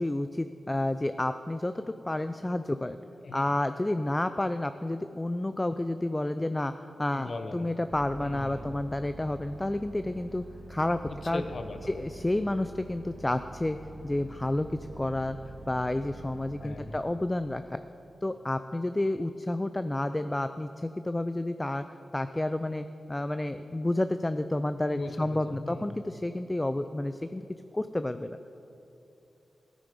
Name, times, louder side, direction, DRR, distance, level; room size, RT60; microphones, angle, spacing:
voice 1, 0.0-3.0 3.3-6.7 7.0-10.4 10.7-11.4 11.9-13.8 14.0-15.4 15.7-17.8 18.2-21.8 22.1-27.5 27.7-28.4, left 1 dB, 20° left, 10 dB, 0.3 m, -30 dB
voice 2, 7.1-7.7 8.2-8.7 11.1-11.9 16.6-16.9 24.8-26.1, left 2 dB, 60° left, 7 dB, 0.9 m, -39 dB
sound 1, 7.9-17.0, right 2 dB, 30° right, 1.0 m, -46 dB
14.0 x 8.9 x 5.2 m, 2.9 s
cardioid pair, 75°, 0 cm